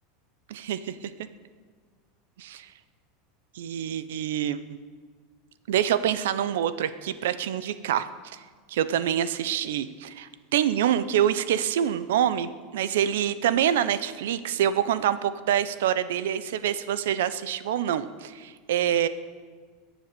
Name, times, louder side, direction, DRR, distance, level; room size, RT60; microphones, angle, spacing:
voice 1, 0.5-1.1 2.4-2.7 3.5-4.6 5.7-8.4 8.7-19.1, right 10 dB, 85° right, 14 dB, 0.8 m, -26 dB
21.5 x 7.5 x 6.9 m, 1.5 s
supercardioid pair, 140°, 0 cm